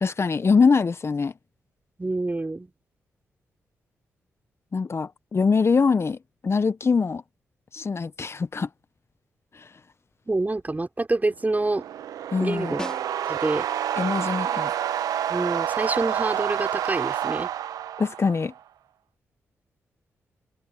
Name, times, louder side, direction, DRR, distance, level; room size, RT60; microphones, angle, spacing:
voice 1, 0.0-1.3 4.7-6.2 6.4-7.2 7.7-8.7 9.5-9.7 12.3-12.7 14.0-14.7 18.0-18.5, left 5 dB, 45° left, 0.9 m, -23 dB
voice 2, 2.0-2.7 10.3-11.8 12.4-12.8 13.3-13.7 15.3-17.5, right 2 dB, 25° right, 5.3 m, -27 dB
sound 1, 11.5-18.6, right 10 dB, 80° right, 1.0 m, -28 dB
Snare drum, 12.8-13.7 18.1-18.2, left 1 dB, 10° left, 3.4 m, -38 dB
supercardioid pair, 45°, 6 cm